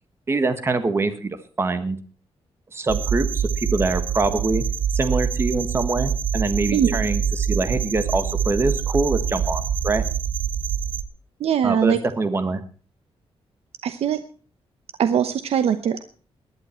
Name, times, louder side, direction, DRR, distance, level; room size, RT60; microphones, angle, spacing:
voice 1, 0.3-2.0 2.7-4.6 4.9-10.0 11.6-12.6, right 3 dB, 25° right, 11 dB, 1.4 m, -24 dB
sound 1, 2.9-11.0, right 7 dB, 55° right, 1.1 m, -25 dB
voice 2, 11.4-12.0 13.8-14.2 15.0-16.0, right 8 dB, 75° right, 11 dB, 1.0 m, -21 dB
19.0 x 11.5 x 4.4 m, 0.40 s
wide cardioid pair, 150°, 10 cm